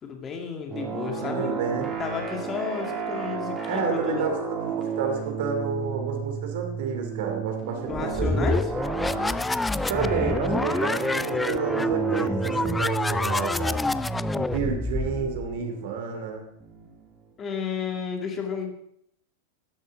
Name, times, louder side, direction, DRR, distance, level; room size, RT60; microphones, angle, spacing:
voice 1, 0.0-1.5 2.0-4.3 7.9-8.6 17.4-18.7, left 6 dB, 25° left, 2 dB, 2.2 m, -32 dB
fm buchla aalto drone, 0.7-17.2, right 6 dB, 20° right, 3.0 m, -33 dB
voice 2, 1.2-1.9 3.7-8.6 9.9-13.9 14.3-16.5, right 5 dB, 55° right, 3 dB, 2.5 m, -30 dB
sound 1, 7.9-15.6, left 3 dB, 10° left, 0.3 m, -27 dB
13.5 x 10.5 x 3.9 m, 0.72 s
figure-of-eight pair, 90°, 0 cm